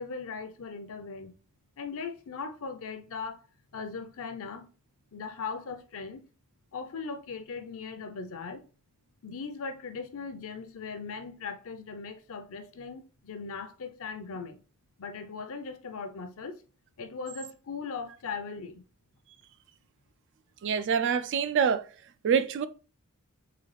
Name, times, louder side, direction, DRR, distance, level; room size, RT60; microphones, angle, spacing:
voice 1, 0.0-1.3 1.8-3.4 3.7-4.7 5.1-6.2 6.7-8.6 9.2-14.6 15.0-16.6 17.0-18.8, left 5 dB, 65° left, 0.6 m, -39 dB
voice 2, 20.6-21.9 22.2-22.7, right 7 dB, 55° right, 0.4 m, -25 dB
3.9 x 3.2 x 3.2 m
head